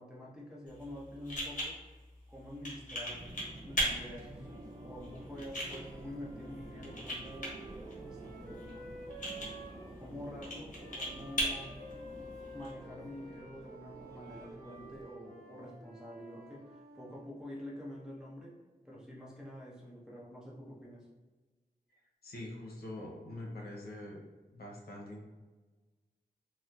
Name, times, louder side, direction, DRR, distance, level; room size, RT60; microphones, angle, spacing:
voice 1, 0.0-1.8 2.3-3.2 3.6-4.5 4.8-7.6 8.0-8.8 10.0-11.9 12.5-18.5 18.8-21.1, left 1 dB, 5° right, -5 dB, 0.8 m, -47 dB
sound 1, 0.7-12.7, equal, 55° left, 1.1 m, -40 dB
Subway metro underground, 3.1-15.0, right 1 dB, 25° right, 0.4 m, -51 dB
Wind instrument woodwind instrument, 4.3-10.1 10.8-17.3, right 1 dB, 85° right, 0.8 m, -52 dB
voice 2, 22.2-24.2 24.5-25.2, left 1 dB, 80° left, -3 dB, 0.7 m, -44 dB
4.1 x 2.1 x 2.4 m, 1.3 s
wide cardioid pair, 90°, 16 cm